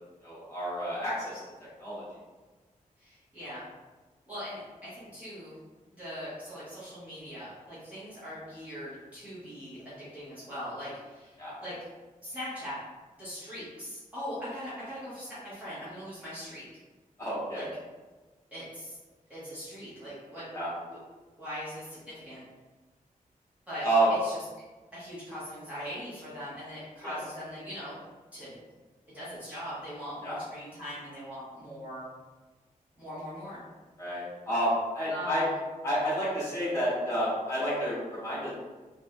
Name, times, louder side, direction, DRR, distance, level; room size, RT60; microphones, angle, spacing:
voice 1, 0.2-1.3 1.8-2.0 11.4-11.5 17.2-17.6 20.5-20.7 23.8-24.1 27.0-27.2 30.2-30.4 34.0-35.4 35.8-38.5, right 1 dB, 20° left, -10 dB, 1.4 m, -29 dB
voice 2, 3.0-3.6 4.3-5.6 5.9-11.3 11.6-11.7 12.2-12.8 13.2-16.6 17.5-17.7 18.5-19.0 19.3-20.4 20.9-21.0 21.4-22.4 23.7-24.4 24.9-28.0 28.3-28.6 29.1-32.1 33.0-33.6 35.1-35.4, equal, 10° right, -13 dB, 1.1 m, -40 dB
3.4 x 2.5 x 2.2 m, 1.3 s
wide cardioid pair, 150°, 14 cm